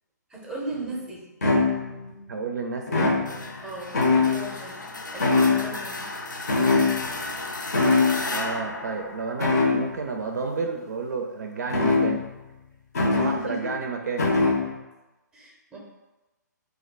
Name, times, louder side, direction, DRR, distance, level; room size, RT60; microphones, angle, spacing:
voice 1, 0.3-1.2 3.6-4.8 5.1-6.1 13.2-13.7 15.3-15.8, right 2 dB, 5° right, -3 dB, 0.6 m, -37 dB
sound 1, 0.7-0.8 1.4-2.1 2.9-3.6 3.9-4.6 5.2-5.9 6.5-7.3 7.7-8.2 9.4-10.0 11.7-12.4 12.9-13.4 14.2-14.8, left 3 dB, 55° left, 0.7 m, -22 dB
voice 2, 2.3-3.1 8.3-12.3 13.0-14.3, right 4 dB, 65° right, 3 dB, 0.4 m, -31 dB
sound 2, 3.2-10.0, left 2 dB, 90° left, 0.4 m, -35 dB
2.3 x 2.2 x 3.9 m, 1.1 s
figure-of-eight pair, 125°, 10 cm